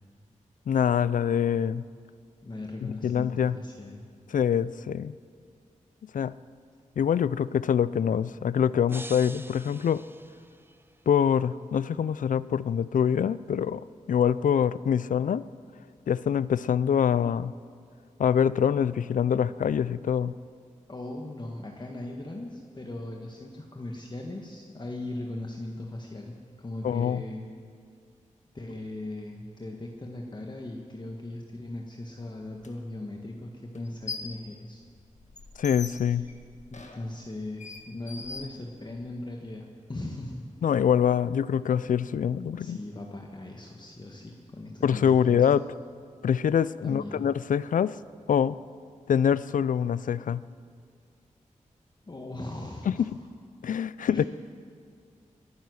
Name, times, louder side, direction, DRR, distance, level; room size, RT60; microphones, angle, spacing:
voice 1, 0.7-1.8 2.8-3.5 4.3-5.1 6.1-6.3 7.0-10.0 11.1-15.5 16.1-17.5 18.2-20.3 26.8-27.2 35.6-36.2 40.6-42.8 44.8-45.7 46.2-48.0 48.3-48.6 49.1-50.4 52.9-53.1 53.6-54.3, left 8 dB, 80° left, 18 dB, 0.4 m, -25 dB
voice 2, 2.4-4.1 20.9-27.5 28.5-34.8 36.2-36.3 36.7-40.4 42.4-45.5 46.8-47.3 52.0-53.1 54.1-54.3, left 2 dB, 35° left, 1 dB, 1.5 m, -39 dB
sound 1, 8.9-11.0, right 1 dB, 15° right, 0.7 m, -45 dB
sound 2, 32.6-32.7 33.7-34.4 34.8-39.1, left 4 dB, 60° left, 1.6 m, -42 dB
21.5 x 10.5 x 6.4 m, 2.2 s
cardioid pair, 65°, 13 cm